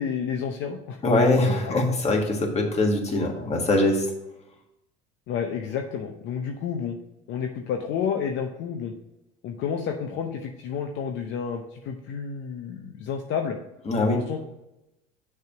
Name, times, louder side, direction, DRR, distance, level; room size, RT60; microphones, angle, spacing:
voice 1, 0.0-1.0 1.6-1.7 5.3-7.0 7.3-8.9 9.4-13.6 14.1-14.4, left 7 dB, 60° left, 3 dB, 0.7 m, -30 dB
voice 2, 1.0-4.1 13.9-14.2, left 2 dB, 30° left, 1 dB, 1.6 m, -22 dB
6.5 x 3.5 x 5.8 m, 0.92 s
supercardioid pair, 95°, 21 cm